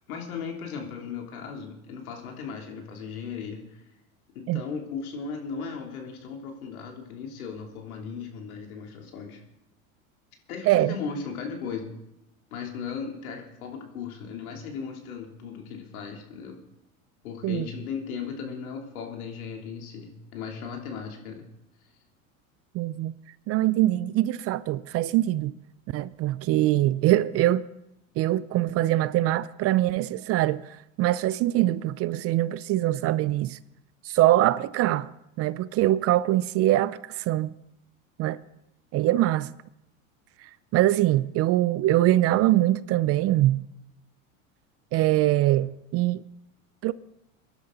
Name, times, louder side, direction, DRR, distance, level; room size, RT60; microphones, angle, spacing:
voice 1, 0.1-3.8 4.3-9.4 10.5-11.9 12.5-16.6 17.2-21.4, left 6 dB, 85° left, 3.2 m, -37 dB
voice 2, 22.7-23.1 23.5-25.5 25.9-27.6 28.2-33.6 34.0-35.1 35.4-37.5 38.2-38.4 38.9-39.5 40.4-43.6 44.9-46.2 46.8-46.9, right 15 dB, 35° right, 0.4 m, -23 dB
22.5 x 11.5 x 3.9 m
supercardioid pair, 110°, 42 cm